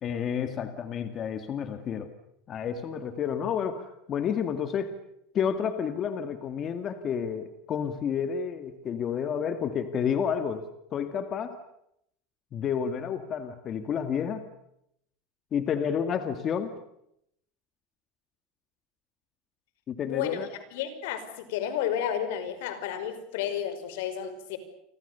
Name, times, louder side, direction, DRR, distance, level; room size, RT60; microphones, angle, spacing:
voice 1, 0.0-2.1 2.5-5.0 5.3-10.6 10.9-11.5 12.5-14.4 15.5-16.7 19.9-20.5, left 7 dB, 30° left, 9 dB, 2.1 m, -30 dB
voice 2, 20.0-20.5 20.7-24.6, left 9 dB, 80° left, 11 dB, 5.3 m, -32 dB
29.5 x 25.0 x 6.9 m, 0.75 s
supercardioid pair, 145°, 0 cm